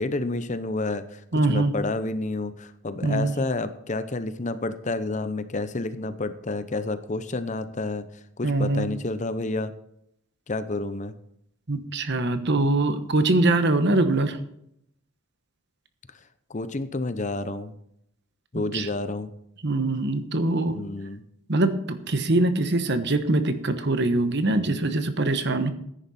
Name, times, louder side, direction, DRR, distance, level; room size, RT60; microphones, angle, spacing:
voice 1, 0.0-1.2 1.5-8.1 8.4-9.7 10.5-11.1 16.5-17.7 18.5-19.3 20.7-21.2, left 2 dB, 35° left, 11 dB, 0.8 m, -29 dB
voice 2, 1.3-1.7 3.0-3.3 8.4-8.9 11.7-14.4 18.7-18.9 19.6-20.8 21.5-25.7, right 2 dB, 50° right, 10 dB, 1.2 m, -23 dB
14.5 x 10.0 x 4.3 m, 0.73 s
head